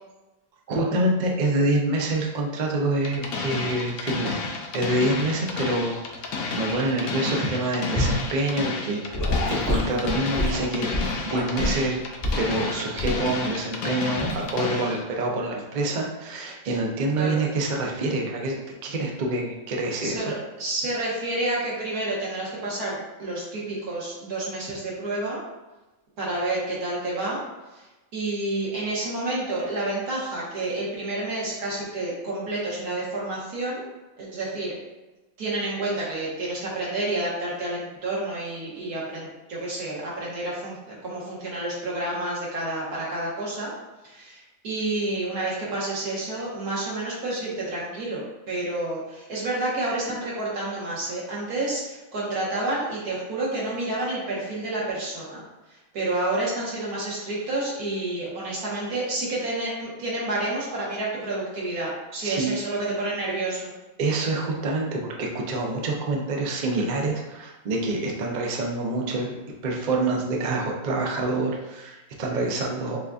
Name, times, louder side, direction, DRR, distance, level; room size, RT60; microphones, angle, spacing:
voice 1, 0.7-4.4 4.7-9.0 9.5-12.0 12.4-20.3 62.2-62.6 64.0-69.4 69.6-73.0, right 2 dB, 50° right, 0 dB, 0.5 m, -26 dB
sound 1, 3.0-15.0, left 4 dB, 75° left, 1.0 m, -31 dB
Gurgling / Sink (filling or washing) / Liquid, 8.0-8.2 9.1-11.8 12.2-12.5 13.0-13.3 14.2-14.4, left 1 dB, 15° left, 0.7 m, -26 dB
voice 2, 20.0-25.4 26.2-27.4 27.7-27.8 28.1-33.8 34.2-34.7 35.4-43.7 44.0-55.4 55.7-63.7, right 2 dB, 85° right, -6 dB, 1.7 m, -29 dB
6.6 x 2.6 x 2.3 m, 1.1 s
omnidirectional pair, 1.5 m